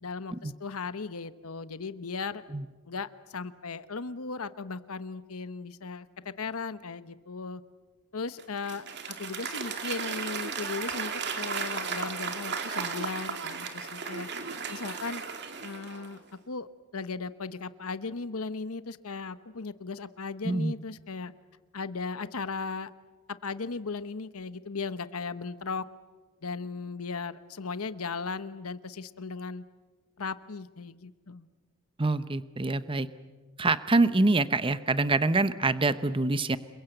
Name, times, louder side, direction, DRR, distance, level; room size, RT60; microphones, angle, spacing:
voice 1, 0.0-2.4 2.9-7.6 8.1-15.2 15.6-16.2 16.5-16.7 16.9-21.3 21.7-22.9 23.3-25.9 26.4-29.6 30.2-31.5, left 4 dB, 80° left, 14 dB, 1.0 m, -37 dB
Applause / Crowd, 8.4-16.2, right 5 dB, 50° right, 2.4 m, -35 dB
voice 2, 32.0-33.1 33.6-36.6, right 2 dB, 25° right, 13 dB, 0.9 m, -25 dB
28.5 x 22.5 x 8.0 m, 1.3 s
head